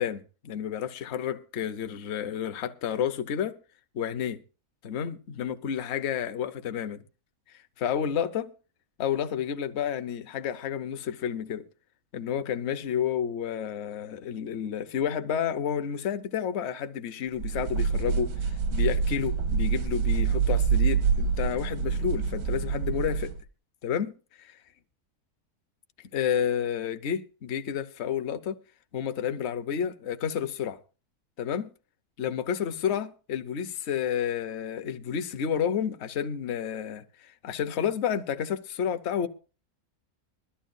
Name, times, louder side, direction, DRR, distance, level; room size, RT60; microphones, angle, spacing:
voice 1, 0.0-3.6 3.9-4.4 4.8-7.0 7.8-8.5 9.0-11.7 12.1-23.3 23.8-24.1 26.1-28.6 28.9-30.8 31.4-31.7 32.2-39.3, left 8 dB, 55° left, 1.0 m, -30 dB
sound 1, 17.4-23.4, right 6 dB, 85° right, 1.4 m, -26 dB
21.0 x 13.0 x 2.6 m
omnidirectional pair, 1.6 m